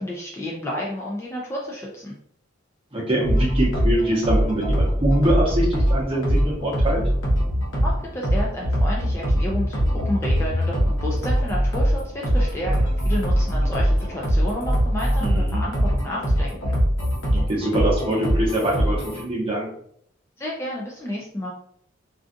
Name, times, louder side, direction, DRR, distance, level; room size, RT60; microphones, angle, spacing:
voice 1, 0.0-2.1 7.8-16.7 20.4-21.5, equal, 15° left, -4 dB, 0.3 m, -31 dB
voice 2, 2.9-7.0 15.2-15.6 17.3-19.7, right 1 dB, 30° right, -4 dB, 0.8 m, -24 dB
sound 1, 3.2-19.2, equal, 65° left, 0.9 m, -22 dB
2.5 x 2.4 x 2.4 m, 0.67 s
head